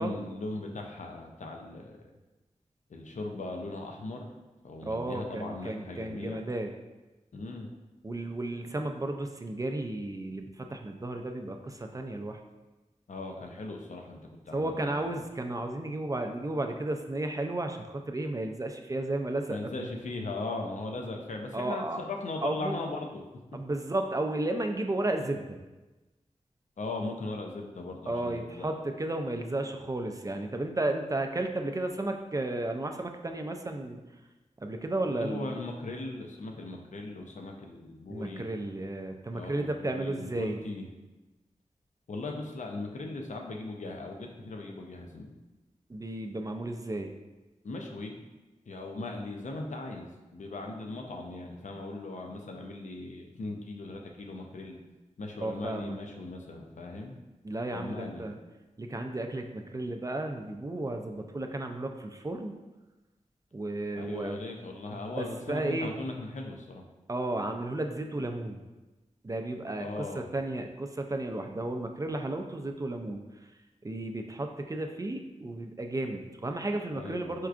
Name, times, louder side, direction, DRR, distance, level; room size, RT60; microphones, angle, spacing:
voice 1, 0.0-2.0 2.9-4.3 4.6-6.5 7.3-7.7 13.1-15.1 19.5-23.2 26.8-28.7 35.1-38.4 39.3-40.9 42.1-45.3 47.6-48.2 48.7-54.8 55.2-57.1 57.7-58.3 63.9-66.8 69.8-70.2 76.9-77.3, left 2 dB, 70° left, 2 dB, 0.5 m, -38 dB
voice 2, 4.8-6.7 8.0-12.4 14.5-19.9 21.5-22.0 22.4-22.8 23.5-25.6 28.1-34.0 34.6-35.6 38.1-40.6 45.9-47.1 55.4-56.0 57.4-58.4 58.8-62.6 63.5-64.4 64.9-65.9 67.1-68.6 69.2-73.2 73.8-77.5, right 2 dB, 25° right, 4 dB, 0.3 m, -33 dB
4.4 x 2.4 x 2.4 m, 1.1 s
cardioid pair, 45°, 13 cm